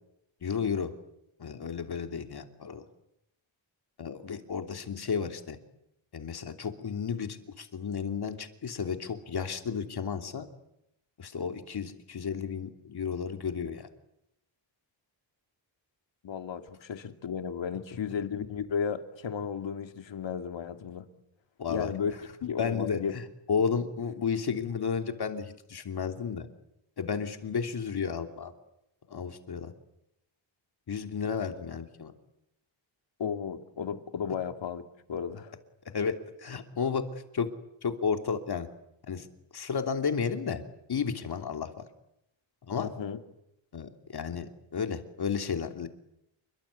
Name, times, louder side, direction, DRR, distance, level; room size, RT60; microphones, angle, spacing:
voice 1, 0.4-0.9 1.4-2.8 4.0-5.6 6.1-10.5 11.2-13.9 21.6-21.9 22.6-26.5 27.0-28.5 29.1-29.7 30.9-32.1 35.9-37.0 37.3-37.5 37.8-38.7 39.1-39.3 39.5-40.6 40.9-41.9 42.6-42.9 43.7-45.9, left 6 dB, 55° left, 5 dB, 3.1 m, -32 dB
voice 2, 16.2-21.1 21.7-22.1 22.4-23.1 33.2-34.8 35.1-35.5 42.8-43.2, left 7 dB, 70° left, 7 dB, 2.7 m, -34 dB
28.5 x 23.5 x 8.5 m, 0.83 s
wide cardioid pair, 155°, 46 cm